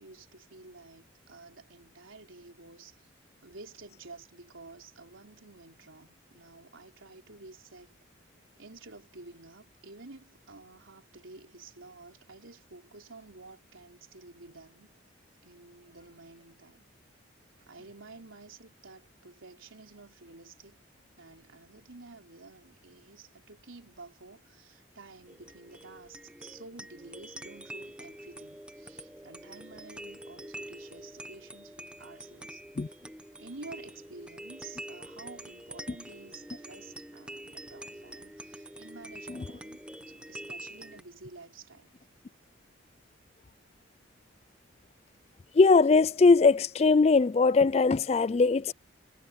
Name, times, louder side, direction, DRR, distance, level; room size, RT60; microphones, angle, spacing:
voice 1, 0.0-3.1 3.4-8.0 8.6-14.9 15.4-16.9 17.7-20.8 21.2-33.0 33.3-39.8 40.1-41.9, right 3 dB, 85° right, 3.7 m, -51 dB
sound 1, 25.3-41.0, right 1 dB, 5° right, 1.2 m, -46 dB
voice 2, 45.6-48.7, left 4 dB, 30° left, 0.3 m, -21 dB
head